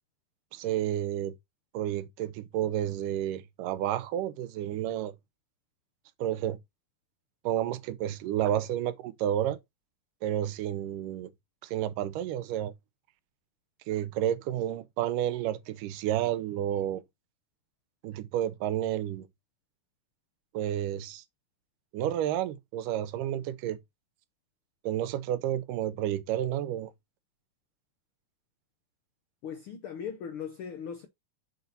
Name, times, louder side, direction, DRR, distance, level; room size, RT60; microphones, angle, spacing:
voice 1, 0.5-1.3 1.7-5.1 6.2-6.6 7.4-9.6 10.2-11.3 11.6-12.7 13.9-17.0 18.0-19.3 20.5-21.2 21.9-23.8 24.8-26.9, right 11 dB, 85° right, 2.3 m, -30 dB
voice 2, 29.4-31.1, left 7 dB, 90° left, 1.2 m, -38 dB
6.6 x 4.2 x 4.1 m
omnidirectional pair, 3.7 m